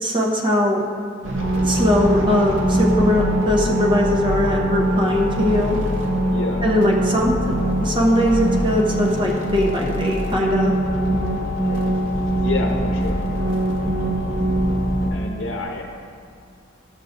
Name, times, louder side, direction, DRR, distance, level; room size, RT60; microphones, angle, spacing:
voice 1, 0.0-0.8 1.6-5.8 6.6-7.3 7.8-10.7, left 1 dB, 25° right, -1 dB, 0.8 m, -20 dB
sound 1, 1.2-15.1, right 1 dB, 70° right, 0.9 m, -23 dB
sound 2, 1.4-15.2, left 4 dB, 35° left, 0.4 m, -33 dB
voice 2, 5.4-5.8 6.3-6.6 11.6-11.9 12.4-13.2 15.1-15.8, left 2 dB, 65° left, 0 dB, 0.8 m, -29 dB
13.5 x 6.4 x 2.6 m, 2.4 s
head